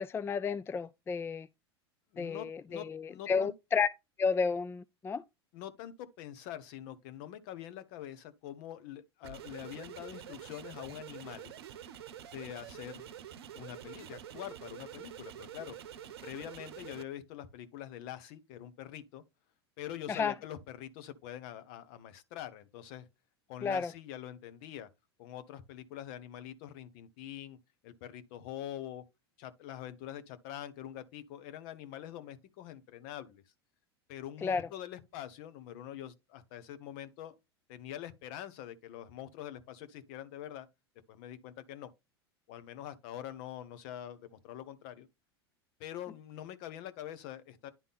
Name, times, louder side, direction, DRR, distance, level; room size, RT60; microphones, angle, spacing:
voice 1, 0.0-1.5 2.2-3.9 4.2-5.2 20.1-20.3 23.6-23.9 34.4-34.7, left 5 dB, 15° left, 0.4 m, -32 dB
voice 2, 2.1-3.5 5.5-11.5 12.3-13.0 13.5-19.2 19.8-23.1 23.5-24.9 25.2-27.6 27.8-29.0 29.4-33.4 34.1-37.3 37.7-40.7 41.1-41.9 42.5-45.1 45.8-47.7, left 11 dB, 55° left, 1.4 m, -45 dB
sound 1, 9.2-17.0, right 10 dB, 70° right, 0.8 m, -47 dB
10.5 x 3.6 x 4.2 m
hypercardioid pair, 85°, 14 cm